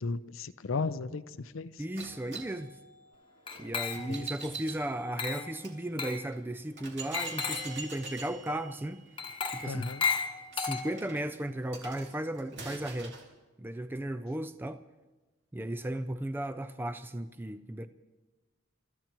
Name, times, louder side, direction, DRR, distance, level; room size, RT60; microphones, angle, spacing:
voice 1, 0.0-1.8 4.0-4.3 9.6-10.0, left 4 dB, 80° left, 14 dB, 0.6 m, -35 dB
voice 2, 1.8-2.7 3.6-9.1 9.5-9.9 10.5-13.2 13.6-14.8 15.5-17.9, right 1 dB, 10° right, 10 dB, 0.4 m, -35 dB
sound 1, 2.0-5.8 6.3-6.4 6.8-13.3, right 4 dB, 60° right, 2.5 m, -46 dB
Glass, 3.5-4.3 5.2-5.6 6.0-6.3 7.1-7.8 9.2-11.2, left 5 dB, 25° left, 1.1 m, -34 dB
29.0 x 13.5 x 3.0 m, 1.2 s
head